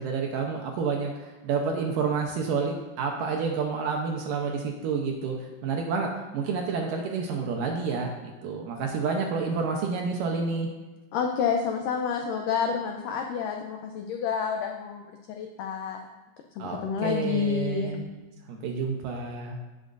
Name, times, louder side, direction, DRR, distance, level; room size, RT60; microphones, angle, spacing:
voice 1, 0.0-5.4 5.6-10.7 16.6-18.1 18.5-19.6, right 5 dB, 75° right, 1 dB, 2.1 m, -29 dB
voice 2, 11.1-16.1 16.6-17.9, left 7 dB, 90° left, 3 dB, 1.9 m, -29 dB
16.0 x 6.5 x 2.6 m, 1.2 s
omnidirectional pair, 4.6 m